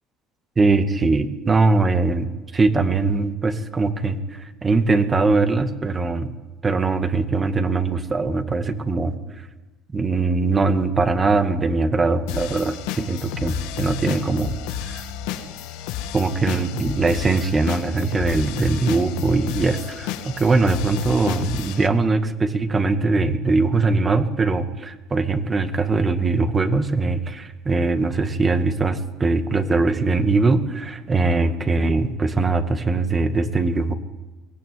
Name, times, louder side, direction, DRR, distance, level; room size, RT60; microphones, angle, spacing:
voice 1, 0.6-6.3 6.6-9.2 9.9-14.5 14.9-15.0 16.1-33.9, right 3 dB, 25° right, 8 dB, 2.1 m, -21 dB
sound 1, 12.3-21.9, left 10 dB, 85° left, 1.8 m, -31 dB
23.0 x 17.0 x 9.6 m, 1.2 s
supercardioid pair, 105°, 0 cm